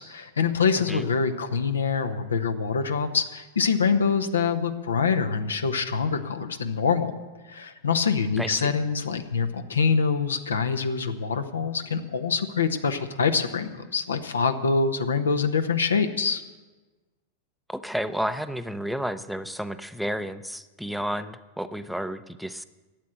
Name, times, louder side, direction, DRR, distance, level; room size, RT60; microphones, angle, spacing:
voice 1, 0.0-7.2 7.5-16.4, left 5 dB, 70° left, 8 dB, 1.0 m, -25 dB
voice 2, 8.4-8.7 17.7-22.6, equal, ahead, 11 dB, 0.7 m, -31 dB
12.0 x 8.5 x 9.1 m, 1.2 s
figure-of-eight pair, 90°, 0 cm